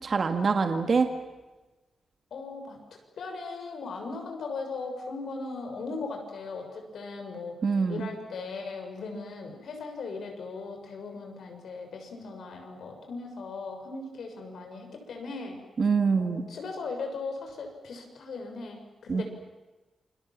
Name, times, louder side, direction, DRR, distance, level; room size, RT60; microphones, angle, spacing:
voice 1, 0.0-1.1 7.6-8.1 15.8-16.4 19.1-19.2, right 5 dB, 40° right, 6 dB, 1.9 m, -25 dB
voice 2, 2.3-2.8 3.2-7.6 7.9-15.6 16.1-19.2, left 4 dB, 70° left, 4 dB, 6.6 m, -38 dB
28.5 x 26.0 x 7.5 m, 1.1 s
wide cardioid pair, 170°, 0 cm